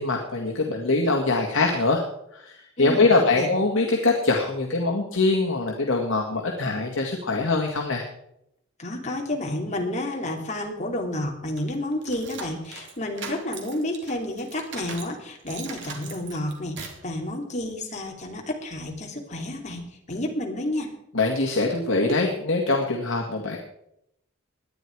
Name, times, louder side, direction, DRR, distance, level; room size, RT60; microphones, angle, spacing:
voice 1, 0.0-2.0 2.3-8.1 21.1-23.6, left 3 dB, 70° left, 1 dB, 1.9 m, -23 dB
voice 2, 8.8-20.9, left 1 dB, 35° left, 1 dB, 3.1 m, -30 dB
sound 1, 11.6-15.1 15.5-17.1, right 5 dB, 60° right, 2.9 m, -40 dB
18.5 x 11.0 x 4.7 m, 0.79 s
head